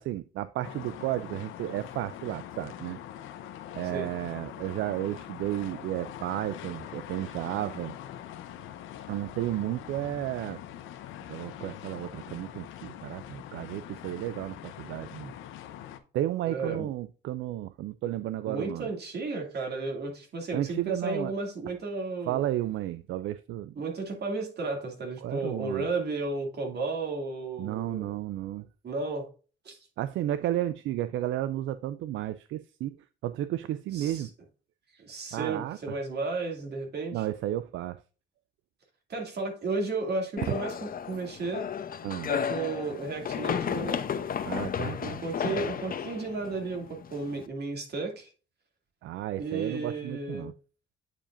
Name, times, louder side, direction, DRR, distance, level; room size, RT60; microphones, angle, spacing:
voice 1, 0.0-3.0 3.7-7.9 9.1-10.6 11.3-15.3 16.1-18.9 20.5-21.3 22.3-23.8 25.2-25.9 27.6-28.7 30.0-34.3 35.3-35.8 37.1-38.0 42.0-42.3 44.4-45.2 49.0-50.5, right 13 dB, 80° right, 0.4 m, -33 dB
sound 1, 0.6-16.0, left 11 dB, 90° left, 0.8 m, -43 dB
voice 2, 16.5-16.9 18.5-22.4 23.8-28.1 28.8-29.3 29.6-29.8 33.9-34.2 35.0-37.2 39.1-41.7 42.3-44.0 44.8-48.3 49.4-50.5, right 3 dB, 55° right, 2.4 m, -33 dB
sound 2, 40.4-47.4, left 7 dB, 45° left, 0.7 m, -33 dB
8.6 x 4.9 x 2.5 m
cardioid pair, 90°, 20 cm